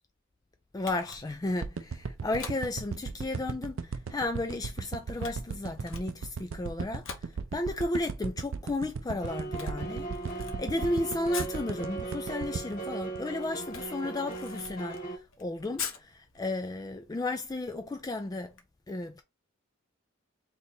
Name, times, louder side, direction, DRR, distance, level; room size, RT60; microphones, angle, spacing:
voice 1, 0.7-18.5 18.9-19.2, left 2 dB, 20° left, 0.3 m, -34 dB
Camera, 0.8-18.6, left 6 dB, 70° left, 1.0 m, -47 dB
sound 1, 1.6-13.9 14.4-14.5, right 5 dB, 65° right, 0.5 m, -37 dB
sound 2, 9.2-15.2, right 3 dB, 40° left, 1.7 m, -38 dB
3.3 x 2.9 x 4.2 m
head